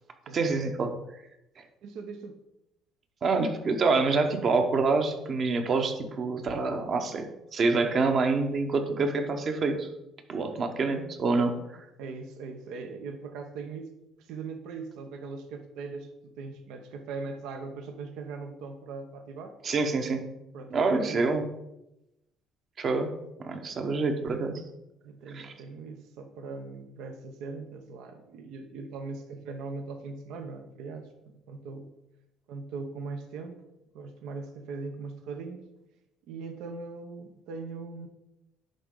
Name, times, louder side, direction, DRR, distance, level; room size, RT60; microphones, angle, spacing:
voice 1, 0.3-0.9 3.2-9.9 10.3-11.8 19.6-20.2 20.7-21.4 22.8-23.1 23.4-24.6 25.3-25.5, right 3 dB, 45° right, 6 dB, 1.0 m, -26 dB
voice 2, 1.8-2.3 12.0-13.9 14.2-19.5 20.5-21.3 23.5-23.7 25.0-31.9 32.5-33.6 33.9-35.6 36.3-38.1, right 4 dB, 75° right, 6 dB, 0.7 m, -40 dB
10.5 x 3.7 x 3.8 m, 0.90 s
supercardioid pair, 90°, 0 cm